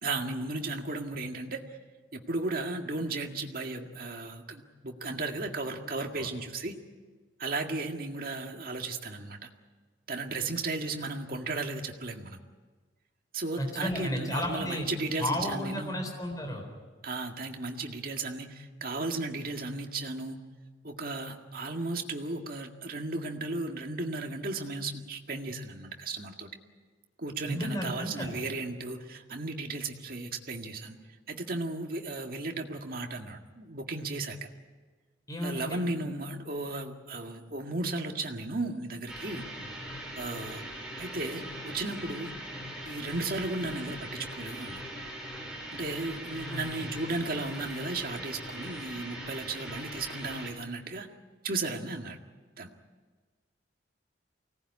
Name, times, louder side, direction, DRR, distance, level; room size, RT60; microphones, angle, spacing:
voice 1, 0.0-1.6 2.1-6.7 7.4-9.5 10.1-12.4 13.3-16.0 17.0-20.4 20.8-26.5 27.2-30.9 31.3-34.4 35.4-39.5 40.2-40.6 41.0-42.3 42.9-44.8 45.7-51.1 51.4-52.2 52.6-52.7, right 2 dB, 50° right, 3 dB, 2.0 m, -35 dB
voice 2, 13.6-14.9 15.2-16.7 27.5-28.4 35.3-35.8 46.5-47.0, equal, 20° left, 3 dB, 4.0 m, -33 dB
sound 1, 39.1-50.5, right 1 dB, 5° right, 5.3 m, -41 dB
24.5 x 18.5 x 9.7 m, 1.4 s
head